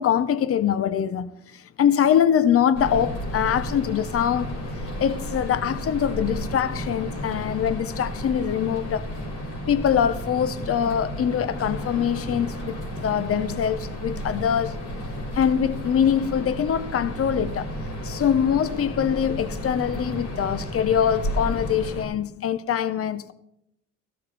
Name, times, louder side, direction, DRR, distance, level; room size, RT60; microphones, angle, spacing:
voice 1, 0.0-4.5 5.0-9.1 9.7-14.8 15.4-17.7 18.0-23.3, left 8 dB, 50° left, 0.8 m, -23 dB
sound 1, 2.7-22.0, equal, 80° left, 5.3 m, -32 dB
15.0 x 12.5 x 3.4 m
cardioid pair, 90°, 30 cm